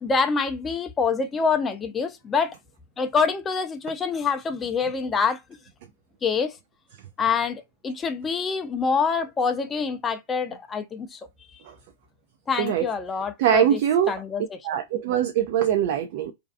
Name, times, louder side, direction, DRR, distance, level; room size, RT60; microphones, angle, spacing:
voice 1, 0.0-2.6 3.0-5.4 6.2-6.5 7.2-11.2 12.5-13.8 14.1-14.4, left 5 dB, 20° left, 0.5 m, -26 dB
voice 2, 13.4-14.1 14.6-16.3, right 10 dB, 60° right, 0.4 m, -22 dB
2.5 x 2.3 x 2.4 m
hypercardioid pair, 105°, 0 cm